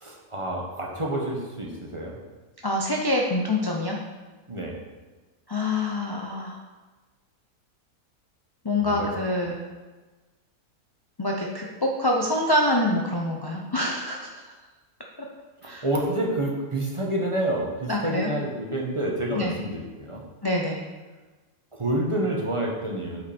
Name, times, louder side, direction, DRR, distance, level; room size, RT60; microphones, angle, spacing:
voice 1, 0.0-2.2 4.5-4.8 8.8-9.1 9.4-9.5 15.6-20.2 21.7-23.2, right 1 dB, 25° right, -2 dB, 1.0 m, -28 dB
voice 2, 2.6-4.0 5.5-6.6 8.6-9.6 11.2-14.4 15.6-15.8 17.9-18.3 19.3-19.5 20.4-20.8, left 1 dB, 35° left, -1 dB, 0.3 m, -25 dB
7.9 x 5.2 x 4.3 m, 1.3 s
omnidirectional pair, 1.5 m